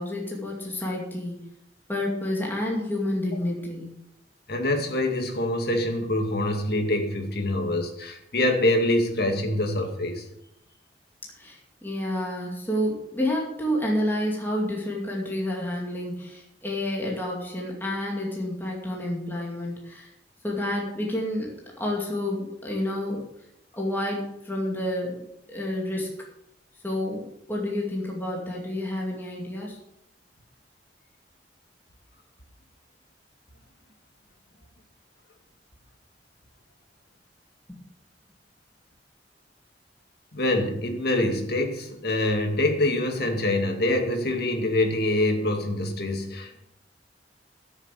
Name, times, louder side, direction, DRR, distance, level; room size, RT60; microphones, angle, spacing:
voice 1, 0.0-1.4 1.9-3.9 11.4-20.1 20.4-23.2 23.7-25.2 25.5-26.1 26.8-27.2 27.5-29.8 37.7-37.8, left 1 dB, 10° left, -2 dB, 2.4 m, -29 dB
voice 2, 4.5-10.3 40.3-46.6, left 1 dB, 60° left, 4 dB, 2.2 m, -25 dB
12.5 x 7.3 x 8.3 m, 0.81 s
head